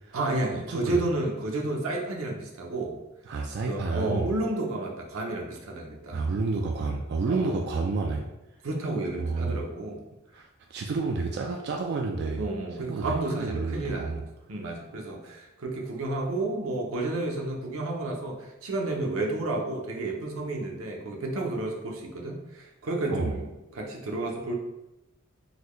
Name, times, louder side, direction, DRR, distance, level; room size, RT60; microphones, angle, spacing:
voice 1, 0.1-3.0 3.7-6.2 7.3-7.6 8.6-10.0 12.4-14.2 14.5-24.5, right 2 dB, 80° right, 0 dB, 0.7 m, -31 dB
voice 2, 0.7-1.0 3.3-4.3 6.1-8.2 9.2-9.6 10.3-12.4 12.8-14.2 23.1-23.3, right 3 dB, 55° right, 1 dB, 0.3 m, -30 dB
3.9 x 2.2 x 3.1 m, 0.97 s
head